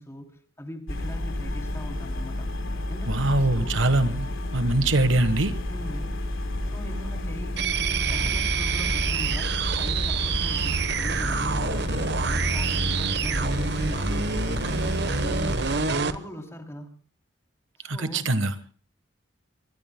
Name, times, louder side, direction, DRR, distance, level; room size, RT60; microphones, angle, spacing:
voice 1, 0.0-2.5 2.9-3.8 5.7-6.2 6.7-11.9 12.2-15.6 16.0-17.0 17.8-18.3, equal, 15° left, 4 dB, 2.9 m, -40 dB
sound 1, 0.9-15.9, left 1 dB, 85° left, 3.7 m, -31 dB
voice 2, 3.1-4.3 4.5-5.5 17.8-18.5, right 2 dB, 75° right, 11 dB, 1.3 m, -23 dB
sound 2, 7.6-16.2, right 4 dB, 55° right, 1.0 m, -27 dB
25.5 x 22.0 x 2.2 m, 0.40 s
head